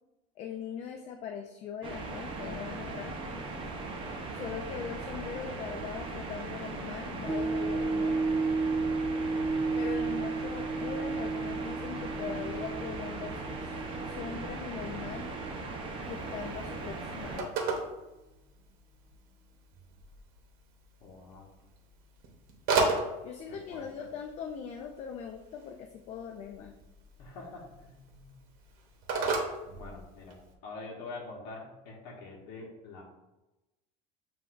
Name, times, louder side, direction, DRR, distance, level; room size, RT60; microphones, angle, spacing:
voice 1, 0.4-3.5 4.3-8.2 9.8-15.3 16.1-17.8 23.2-26.8, left 7 dB, 40° left, 4 dB, 0.4 m, -41 dB
sound 1, 1.8-17.4, right 3 dB, 30° right, 0.7 m, -39 dB
sound 2, 7.3-15.7 16.2-16.3, right 3 dB, 15° left, 1.2 m, -33 dB
Telephone, 16.0-30.5, right 3 dB, 60° right, 0.9 m, -37 dB
voice 2, 21.0-21.5 23.5-24.1 27.2-28.3 29.7-30.4 30.6-33.0, left 3 dB, 70° left, -3 dB, 1.0 m, -45 dB
7.5 x 2.5 x 2.5 m, 1.0 s
cardioid pair, 145°, 17 cm